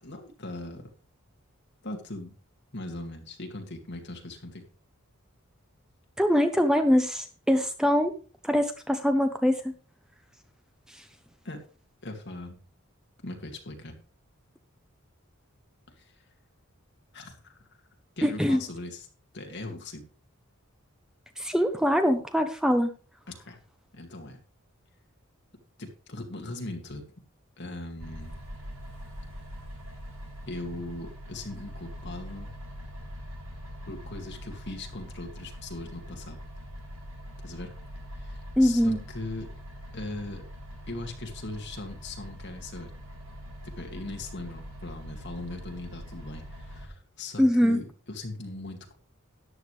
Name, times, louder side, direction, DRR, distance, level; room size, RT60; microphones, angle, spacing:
voice 1, 0.0-0.9 1.8-2.3 2.7-4.6 11.4-11.6 12.0-12.6 13.2-14.0 15.9-16.2 17.1-17.6 18.2-19.1 19.3-20.0 23.3-23.6 23.9-24.4 25.8-27.0 27.6-28.4 30.5-32.5 33.9-36.4 37.4-37.7 38.1-39.5 39.9-40.4 40.9-42.9 43.6-48.9, left 2 dB, 55° left, 3 dB, 2.3 m, -39 dB
voice 2, 6.2-8.1 8.4-9.7 10.9-11.0 18.2-18.6 21.4-22.9 38.6-39.0 47.4-47.8, equal, 5° right, 7 dB, 0.8 m, -23 dB
sound 1, 28.0-46.9, equal, 75° right, 6.4 m, -43 dB
13.5 x 10.0 x 3.3 m, 0.37 s
head